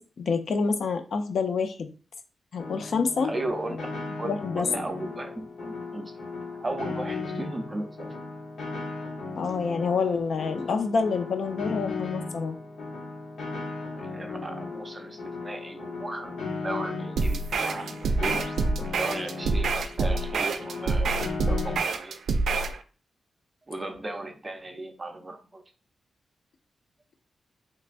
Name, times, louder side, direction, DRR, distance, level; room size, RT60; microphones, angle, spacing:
voice 1, 0.0-1.9 2.5-3.3 4.2-4.7 9.4-12.6, left 5 dB, 65° left, 7 dB, 0.4 m, -27 dB
Piano, 2.6-21.8, left 3 dB, 80° left, 1.0 m, -36 dB
voice 2, 3.2-3.8 4.2-4.3 4.5-6.2 6.6-8.1 13.9-18.4 18.9-21.2 21.5-22.2 23.7-25.6, right 2 dB, 25° right, 4 dB, 0.6 m, -36 dB
sound 1, 17.2-22.8, right 3 dB, 85° right, 0.4 m, -27 dB
3.3 x 3.1 x 2.5 m, 0.35 s
wide cardioid pair, 120°, 0 cm